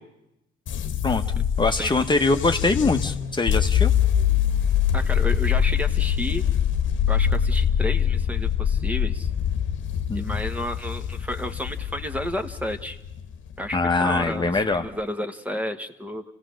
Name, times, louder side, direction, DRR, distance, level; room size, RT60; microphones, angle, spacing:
sound 1, 0.7-14.9, left 9 dB, 70° left, 1.2 m, -24 dB
voice 1, 1.0-3.9 10.1-10.4 13.7-14.9, left 3 dB, 25° left, 5 dB, 1.2 m, -23 dB
voice 2, 4.9-6.4 7.1-9.3 10.1-13.0 13.6-16.2, left 1 dB, 5° right, 7 dB, 1.2 m, -31 dB
28.5 x 16.5 x 6.4 m, 0.88 s
cardioid pair, 90°, 20 cm